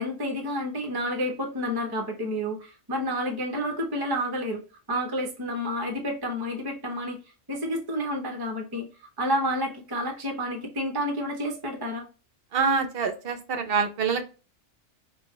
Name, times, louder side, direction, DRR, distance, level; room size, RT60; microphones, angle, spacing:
voice 1, 0.0-4.6 4.9-7.2 7.5-8.9 9.2-12.1, equal, 20° right, 2 dB, 0.7 m, -30 dB
voice 2, 12.5-14.3, right 5 dB, 55° right, 7 dB, 0.8 m, -26 dB
5.6 x 2.4 x 3.0 m, 0.34 s
omnidirectional pair, 1.3 m